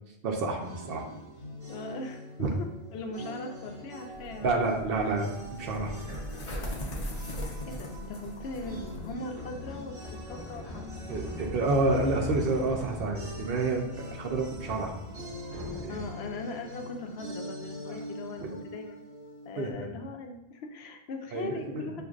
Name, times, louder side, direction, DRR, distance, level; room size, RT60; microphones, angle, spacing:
voice 1, 0.2-1.0 2.4-2.5 4.4-5.9 11.1-14.9 15.5-16.0 17.9-18.0 18.4-18.5 19.6-19.9 21.3-22.0, right 3 dB, 65° right, 1 dB, 0.8 m, -29 dB
sound 1, 0.6-19.7, equal, 40° right, 1.6 m, -44 dB
voice 2, 1.7-4.6 7.7-11.0 15.9-19.0 19.5-22.0, left 3 dB, 75° left, 4 dB, 0.8 m, -39 dB
sound 2, 4.1-9.1, equal, 45° left, 0.6 m, -39 dB
sound 3, 8.6-16.3, left 2 dB, ahead, 0.9 m, -42 dB
6.2 x 2.5 x 2.4 m, 0.86 s
omnidirectional pair, 1.1 m